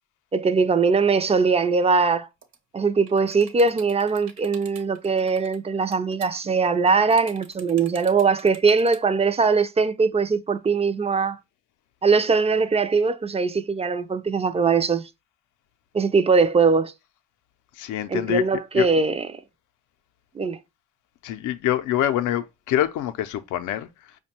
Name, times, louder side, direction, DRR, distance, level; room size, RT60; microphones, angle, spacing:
voice 1, 0.3-2.3 2.7-11.4 12.0-15.0 15.9-16.9 18.1-19.4 20.4-20.6, right 4 dB, 20° right, 0.4 m, -21 dB
sound 1, 2.4-2.6 2.9-9.0, right 6 dB, 65° right, 1.0 m, -46 dB
voice 2, 17.7-18.9 21.2-24.2, left 12 dB, 80° left, 0.5 m, -26 dB
5.1 x 2.2 x 2.8 m
cardioid pair, 90°, 30 cm